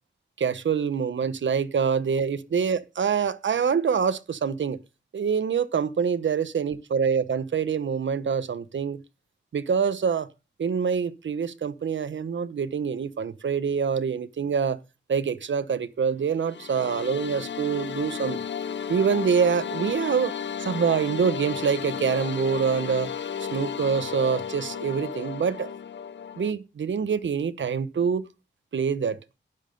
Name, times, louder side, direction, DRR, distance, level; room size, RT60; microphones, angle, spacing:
voice 1, 0.4-4.8 5.1-9.0 9.5-10.3 10.6-14.8 15.1-18.4 18.9-20.3 20.6-23.1 23.5-25.7 26.4-28.3 28.7-29.2, right 6 dB, 85° right, 1.1 m, -25 dB
sound 1, 16.3-26.5, left 7 dB, 75° left, 0.7 m, -34 dB
12.0 x 9.9 x 5.3 m
wide cardioid pair, 75°, 19 cm